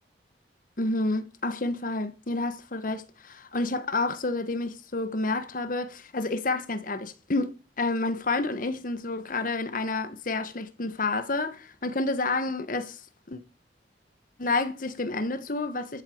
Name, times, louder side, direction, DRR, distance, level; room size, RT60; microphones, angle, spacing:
voice 1, 0.8-13.0 13.3-13.4 14.4-16.0, left 2 dB, 50° left, 1.1 m, -29 dB
13.0 x 7.6 x 5.0 m
head